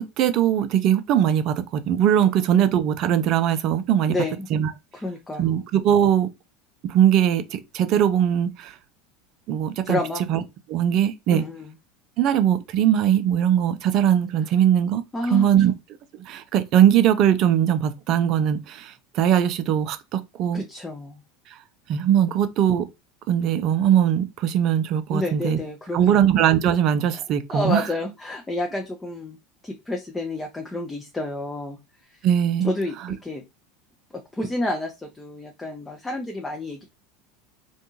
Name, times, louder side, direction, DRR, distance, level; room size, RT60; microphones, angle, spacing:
voice 1, 0.0-4.2 4.5-4.7 5.4-6.3 6.8-8.7 9.5-10.0 10.3-10.4 10.7-11.4 12.2-15.0 15.3-15.7 16.3-20.6 21.9-22.9 23.3-25.6 25.9-27.8 32.2-32.7, right 10 dB, 45° right, 0.4 m, -20 dB
voice 2, 4.1-4.5 4.9-5.6 9.8-10.2 11.3-11.7 15.1-15.5 20.5-21.2 25.1-26.3 27.5-29.4 29.6-32.3 32.6-33.4 34.1-36.8, left 2 dB, 15° left, 0.5 m, -30 dB
2.5 x 2.2 x 2.8 m
figure-of-eight pair, 75°, 0 cm